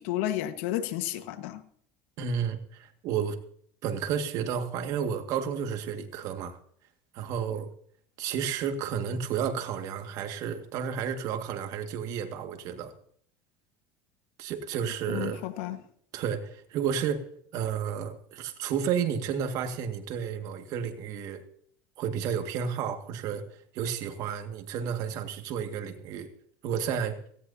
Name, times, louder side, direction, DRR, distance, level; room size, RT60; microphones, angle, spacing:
voice 1, 0.0-1.6 15.1-15.8, left 13 dB, 75° left, 1.4 m, -32 dB
voice 2, 2.2-3.4 3.8-6.6 7.1-7.7 8.2-12.9 14.4-15.5 16.1-17.2 17.5-21.4 22.0-23.4 23.7-26.3 26.6-27.2, right 7 dB, 55° right, 1.9 m, -31 dB
17.5 x 17.0 x 2.8 m
supercardioid pair, 115°, 7 cm